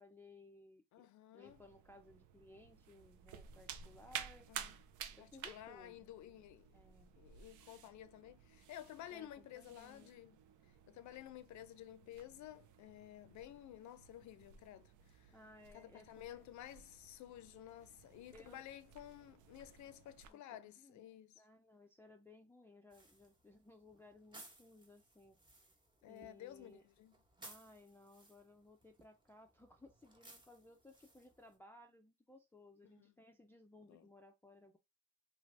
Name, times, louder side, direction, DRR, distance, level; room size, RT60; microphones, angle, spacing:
voice 1, 0.0-1.1 1.3-4.5 4.7-4.8 5.2-6.0 6.7-7.1 9.1-10.1 15.3-16.5 18.3-18.6 20.2-21.1 21.4-25.4 26.1-26.8 27.4-34.8, left 2 dB, 10° left, 0.3 m, -61 dB
voice 2, 0.9-1.6 4.5-4.8 5.2-6.7 7.1-10.4 10.9-15.4 15.7-21.4 26.0-27.1 33.0-33.1 33.9-34.1, left 12 dB, 70° left, 0.5 m, -53 dB
sound 1, 1.4-20.3, right 9 dB, 80° right, 0.5 m, -54 dB
sound 2, 22.9-31.6, right 1 dB, 15° right, 0.9 m, -62 dB
2.7 x 2.4 x 3.2 m
cardioid pair, 90°, 30 cm